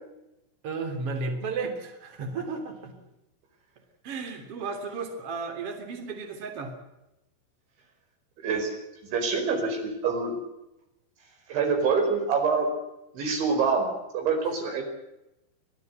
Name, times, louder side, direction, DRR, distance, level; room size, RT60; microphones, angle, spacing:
voice 1, 0.6-2.9 4.0-6.7, right 4 dB, 35° right, 4 dB, 3.6 m, -33 dB
voice 2, 8.4-8.7 9.1-10.4 11.5-12.7 13.1-14.8, right 5 dB, 65° right, 3 dB, 7.2 m, -26 dB
25.5 x 16.5 x 8.0 m, 0.91 s
omnidirectional pair, 5.7 m